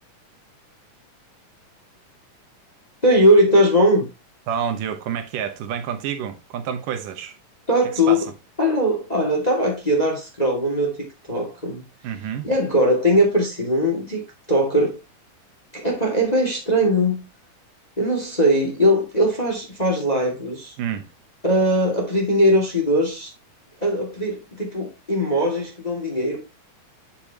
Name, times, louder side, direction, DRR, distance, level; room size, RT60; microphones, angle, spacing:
voice 1, 3.0-4.1 7.7-8.2 8.6-11.8 12.4-14.2 14.5-15.0 15.7-17.2 18.0-20.7 21.4-23.3 23.8-26.4, equal, 15° left, 1.9 m, -20 dB
voice 2, 4.5-7.3 8.1-8.2 12.0-12.5 20.8-21.0, right 8 dB, 75° right, 2.4 m, -28 dB
8.7 x 6.8 x 2.9 m
omnidirectional pair, 4.0 m